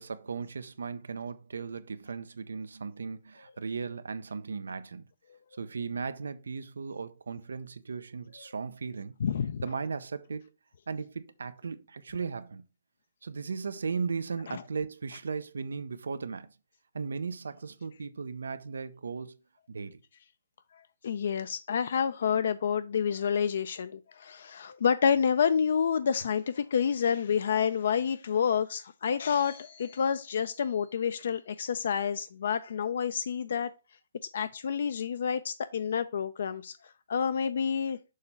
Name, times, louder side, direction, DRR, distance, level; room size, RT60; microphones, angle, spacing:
voice 1, 0.0-5.1 5.6-9.2 9.6-10.4 10.9-12.6 13.2-16.5 16.9-19.4 19.7-20.0, right 5 dB, 90° right, 0.6 m, -36 dB
voice 2, 9.2-9.6 14.5-14.6 21.0-33.7 34.3-38.0, left 7 dB, 60° left, 0.4 m, -29 dB
6.4 x 2.9 x 5.4 m
hypercardioid pair, 160°, 0 cm